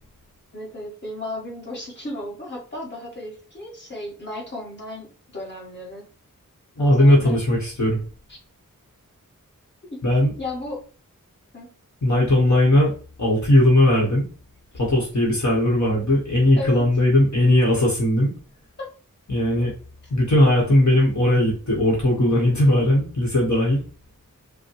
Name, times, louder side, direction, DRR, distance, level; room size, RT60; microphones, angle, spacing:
voice 1, 0.5-6.1 6.8-7.4 8.3-8.4 9.9-10.0 10.4-10.8 11.5-11.7 16.6-16.9 18.8-18.9, left 2 dB, 35° left, -4 dB, 1.6 m, -34 dB
voice 2, 6.8-8.0 10.0-10.3 12.0-12.9 13.2-14.2 14.8-18.3 19.3-19.7 20.1-23.8, left 1 dB, 60° left, -3 dB, 1.2 m, -18 dB
5.1 x 2.2 x 3.2 m, 0.38 s
wide cardioid pair, 70°, 33 cm